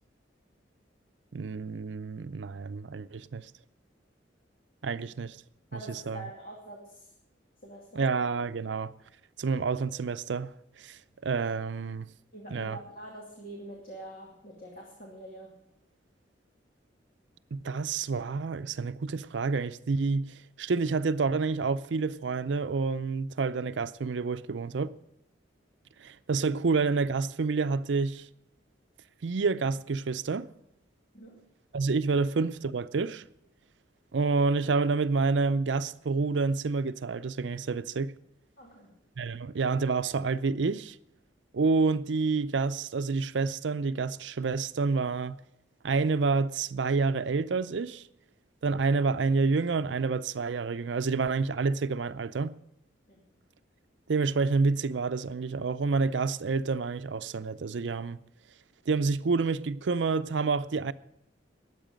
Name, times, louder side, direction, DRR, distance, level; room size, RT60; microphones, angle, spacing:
voice 1, 1.3-3.5 4.8-5.4 5.7-5.8 6.1-6.2 8.0-8.9 9.4-10.5 10.8-12.1 12.5-12.8 17.5-24.9 26.0-28.3 29.2-30.5 31.7-33.2 34.1-38.1 39.2-41.0 41.5-45.4 45.8-48.0 48.6-52.5 54.1-58.2 58.9-60.9, right 4 dB, 75° right, 0.5 m, -28 dB
voice 2, 5.7-7.1 7.6-8.1 12.3-15.6 31.1-31.5 38.6-39.0 53.1-53.3, right 1 dB, 50° left, 2.3 m, -45 dB
20.0 x 8.2 x 5.1 m
head